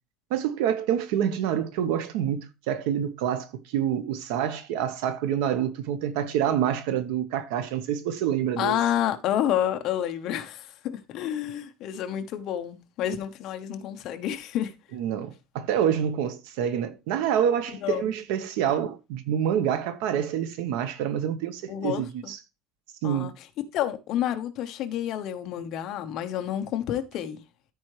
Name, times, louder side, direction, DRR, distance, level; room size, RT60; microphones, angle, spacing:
voice 1, 0.3-8.8 14.9-22.4 23.0-23.3, right 9 dB, 80° right, 1.1 m, -27 dB
voice 2, 8.6-14.7 17.8-18.1 21.7-22.3 23.0-23.3 23.7-27.4, left 11 dB, 45° left, 0.9 m, -29 dB
13.5 x 4.6 x 3.2 m
cardioid pair, 180°, 0 cm